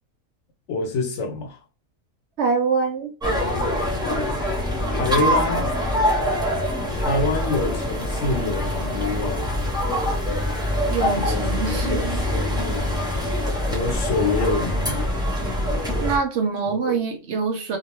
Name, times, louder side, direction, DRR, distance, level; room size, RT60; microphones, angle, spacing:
voice 1, 0.7-1.6 4.9-5.7 7.0-9.5 11.1-13.1 13.7-15.0 16.7-17.0, left 3 dB, 65° left, 0.9 m, -27 dB
voice 2, 2.4-3.1 10.9-12.2 15.9-17.8, right 5 dB, 65° right, 0.8 m, -25 dB
sound 1, 3.2-16.2, left 1 dB, 5° right, 0.6 m, -24 dB
2.3 x 2.2 x 3.0 m
omnidirectional pair, 1.4 m